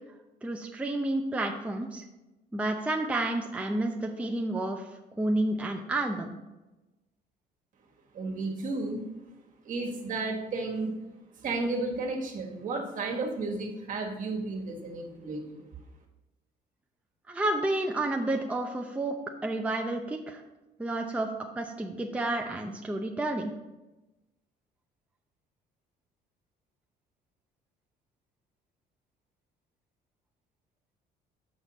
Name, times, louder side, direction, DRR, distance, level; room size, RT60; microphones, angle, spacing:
voice 1, 0.4-2.0 2.5-4.9 5.2-6.3 17.3-19.1 19.4-20.4 20.8-23.5, right 2 dB, 10° right, 1 dB, 0.6 m, -30 dB
voice 2, 8.1-9.0 9.6-10.9 11.4-15.7, right 3 dB, 50° right, 1 dB, 1.5 m, -33 dB
6.4 x 5.9 x 4.1 m, 1.0 s
cardioid pair, 110°, 17 cm